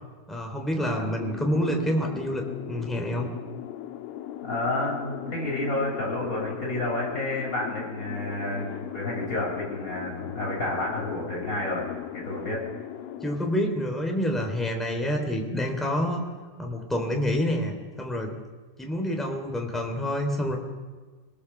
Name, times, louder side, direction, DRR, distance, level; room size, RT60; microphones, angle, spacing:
voice 1, 0.3-2.4 2.7-3.3 13.2-16.2 16.6-18.3 18.8-20.5, equal, ahead, 2 dB, 1.5 m, -27 dB
sound 1, 1.2-13.4, left 12 dB, 90° left, 3.6 m, -38 dB
voice 2, 4.4-11.8 12.1-12.6, left 1 dB, 15° left, -3 dB, 7.3 m, -30 dB
25.5 x 19.0 x 7.2 m, 1.4 s
omnidirectional pair, 5.7 m